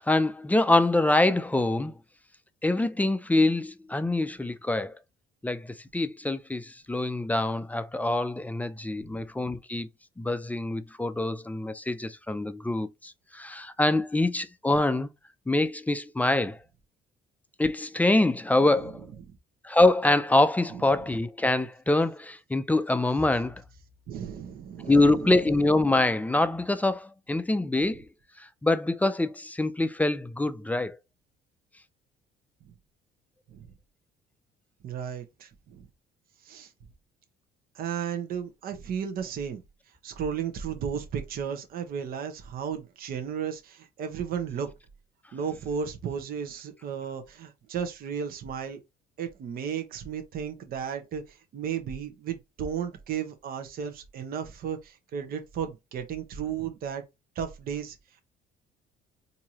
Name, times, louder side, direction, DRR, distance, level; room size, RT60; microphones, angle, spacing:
voice 1, 0.0-1.9 2.6-4.9 5.4-9.9 10.2-15.1 15.5-16.6 17.6-19.1 19.6-23.6 24.9-28.1 28.6-31.0, left 2 dB, 10° left, 0.4 m, -25 dB
voice 2, 24.1-25.7 33.5-33.7 34.8-35.9 36.4-36.7 37.7-39.6 40.0-44.7 45.3-48.8 49.2-57.0 57.3-58.0, right 7 dB, 60° right, 1.0 m, -34 dB
4.5 x 2.7 x 2.9 m
cardioid pair, 110°, 17 cm